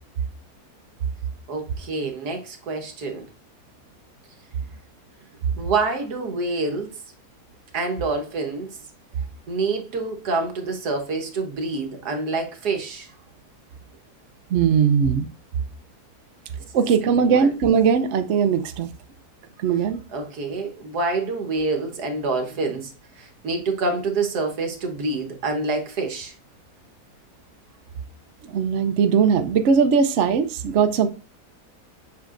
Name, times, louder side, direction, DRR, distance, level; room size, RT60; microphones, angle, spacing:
voice 1, 1.5-3.3 5.6-6.9 7.7-8.8 9.5-13.1 16.8-16.9 17.3-17.5 20.1-22.9 23.2-26.3, right 3 dB, 75° right, 1.8 m, -27 dB
voice 2, 14.5-15.3 16.7-18.9 19.6-20.0 28.4-31.1, right 6 dB, 60° right, 0.8 m, -19 dB
8.1 x 5.6 x 2.5 m
omnidirectional pair, 1.7 m